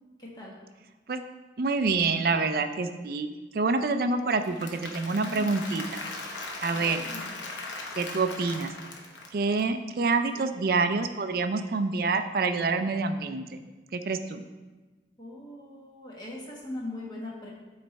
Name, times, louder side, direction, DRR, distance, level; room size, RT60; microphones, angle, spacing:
voice 1, 0.2-0.6 5.2-5.5 6.7-7.4 10.3-10.5 15.2-17.5, left 2 dB, 25° left, -4 dB, 1.2 m, -40 dB
voice 2, 1.6-6.0 6.6-7.0 7.9-8.7 9.3-13.6 13.9-14.4, right 4 dB, 55° right, 8 dB, 0.4 m, -27 dB
Applause / Crowd, 4.3-9.6, left 3 dB, 90° left, 0.9 m, -39 dB
8.7 x 3.2 x 4.1 m, 1.2 s
head